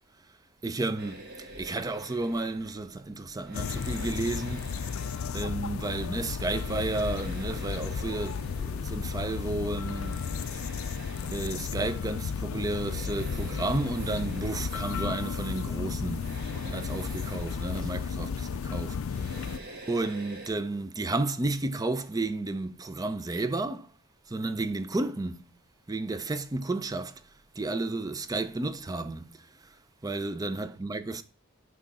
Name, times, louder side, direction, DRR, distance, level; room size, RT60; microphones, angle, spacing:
voice 1, 0.6-4.9 5.3-10.3 11.3-19.6 19.9-23.9 24.3-25.5 25.9-27.2 27.6-29.8 30.0-31.2, right 2 dB, 15° right, 0.5 m, -32 dB
sound 1, 1.0-20.5, right 1 dB, 50° right, 1.3 m, -48 dB
sound 2, 3.5-19.6, left 6 dB, 70° left, 0.4 m, -33 dB
6.1 x 3.7 x 5.3 m
head